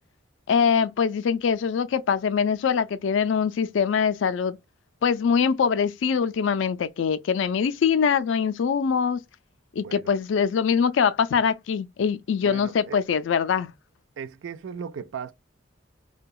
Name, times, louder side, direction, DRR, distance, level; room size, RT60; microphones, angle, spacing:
voice 1, 0.5-4.6 5.0-9.2 9.8-13.7, left 6 dB, 75° left, 0.4 m, -23 dB
voice 2, 9.8-10.1 12.4-13.0 14.2-15.3, right 6 dB, 80° right, 0.4 m, -37 dB
2.7 x 2.2 x 2.3 m
head